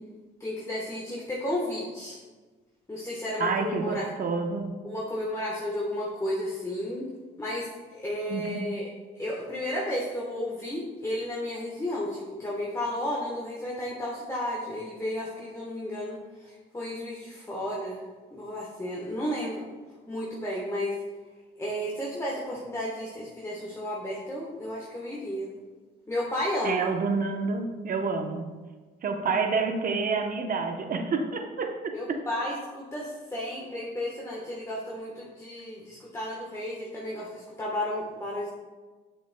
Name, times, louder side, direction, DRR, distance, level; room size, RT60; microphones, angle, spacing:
voice 1, 0.4-2.2 2.9-4.1 4.8-7.0 7.4-8.9 9.2-18.0 18.3-19.7 20.1-20.9 21.6-25.5 26.1-26.9 31.9-38.5, left 1 dB, 15° left, -4 dB, 1.2 m, -33 dB
voice 2, 3.4-4.7 8.3-8.7 26.6-28.4 29.0-32.2, right 4 dB, 45° right, 4 dB, 0.9 m, -28 dB
7.8 x 6.4 x 2.2 m, 1.3 s
cardioid pair, 90°, 20 cm